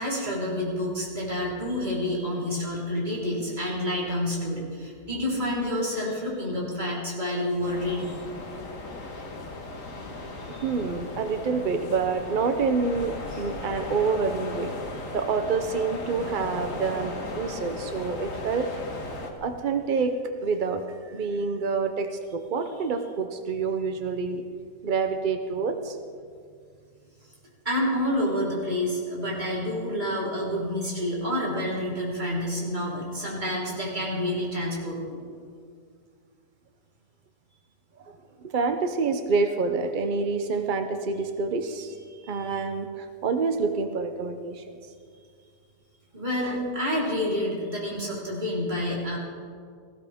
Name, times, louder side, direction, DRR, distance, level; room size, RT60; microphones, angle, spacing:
voice 1, 0.0-8.2 10.5-10.6 13.3-13.4 27.6-35.2 42.1-42.6 46.1-49.2, left 1 dB, 25° right, -6 dB, 4.0 m, -29 dB
sound 1, 7.6-19.3, left 2 dB, 55° left, 1.7 m, -37 dB
voice 2, 10.6-14.7 15.1-18.7 19.4-20.1 20.4-24.4 24.8-26.0 38.1-41.9 42.3-44.8 46.4-46.6, right 4 dB, 55° right, 7 dB, 0.5 m, -27 dB
19.0 x 15.5 x 3.5 m, 2.1 s
omnidirectional pair, 1.7 m